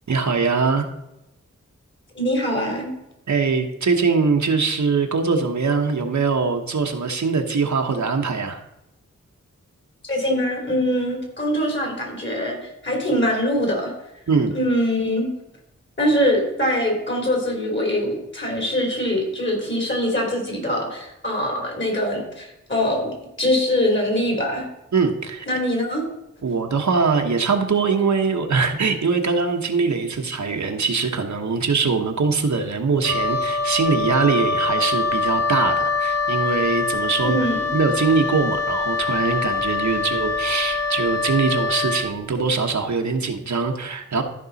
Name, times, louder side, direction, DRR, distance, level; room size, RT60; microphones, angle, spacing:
voice 1, 0.1-0.8 3.3-8.6 14.3-14.5 24.9-25.5 26.4-37.5 37.7-44.2, right 4 dB, 70° right, 4 dB, 1.1 m, -22 dB
voice 2, 2.1-2.9 10.0-12.6 12.8-13.9 14.5-15.3 16.0-24.6 25.5-26.1 37.2-37.6, equal, 40° left, 0 dB, 3.4 m, -23 dB
Wind instrument woodwind instrument, 33.0-42.1, left 4 dB, 60° left, 1.0 m, -24 dB
13.5 x 5.4 x 4.1 m, 0.89 s
wide cardioid pair, 85°, 30 cm